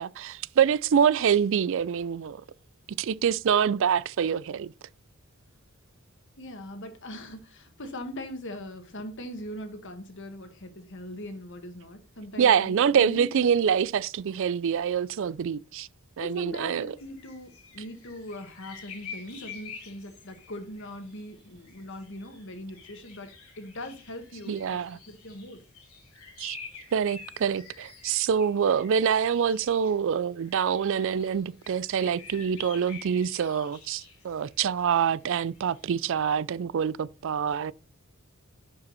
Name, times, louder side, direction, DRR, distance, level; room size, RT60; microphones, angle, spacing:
voice 1, 0.0-2.4 3.0-4.7 12.4-15.9 16.2-16.9 24.5-25.0 26.4-26.6 26.9-37.7, right 7 dB, 60° right, 0.4 m, -25 dB
voice 2, 6.4-13.3 13.7-13.9 16.2-25.6, left 1 dB, 55° left, 1.8 m, -41 dB
sound 1, 17.0-30.0 30.4-36.2, left 5 dB, 85° left, 4.0 m, -48 dB
11.0 x 5.3 x 4.1 m
head